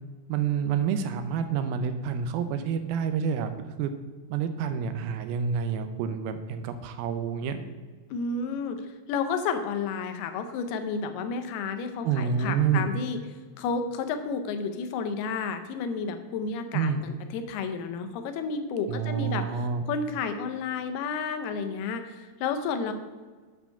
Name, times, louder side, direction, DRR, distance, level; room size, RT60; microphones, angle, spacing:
voice 1, 0.3-3.5 3.8-3.9 4.3-7.6 12.0-12.9 16.7-17.0 18.9-19.8, right 7 dB, 80° right, 9 dB, 2.3 m, -28 dB
voice 2, 8.1-13.2 13.6-19.4 19.9-22.9, left 5 dB, 85° left, 7 dB, 2.7 m, -31 dB
8.2 x 4.4 x 5.5 m, 1.4 s
omnidirectional pair, 4.4 m